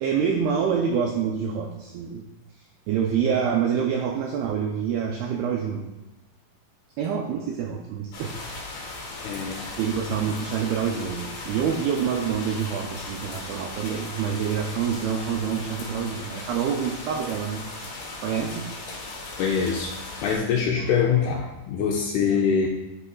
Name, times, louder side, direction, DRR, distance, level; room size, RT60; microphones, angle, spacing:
voice 1, 0.0-2.2 2.9-5.9 7.0-8.9 9.8-17.6 18.2-18.7 22.2-22.3, right 7 dB, 85° right, 1 dB, 2.2 m, -27 dB
sound 1, 8.1-20.4, left 2 dB, 55° left, 3.2 m, -37 dB
voice 2, 9.2-9.8 19.4-20.0 20.2-22.7, left 6 dB, 85° left, 0 dB, 2.3 m, -24 dB
9.8 x 5.6 x 2.3 m, 0.99 s
omnidirectional pair, 5.1 m